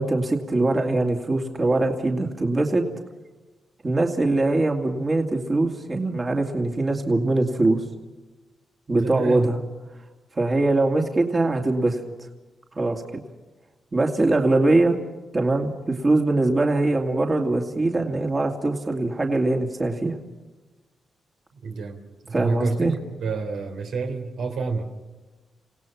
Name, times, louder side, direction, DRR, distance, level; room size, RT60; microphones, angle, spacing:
voice 1, 0.0-2.8 3.8-7.8 8.9-9.6 10.4-12.0 12.7-13.0 13.9-15.0 15.3-20.2 22.3-22.9, right 2 dB, 35° right, 2 dB, 2.5 m, -22 dB
voice 2, 9.0-9.5 21.6-25.0, right 4 dB, 85° right, 3 dB, 3.6 m, -29 dB
29.0 x 17.5 x 6.0 m, 1.2 s
cardioid pair, 70°, 0 cm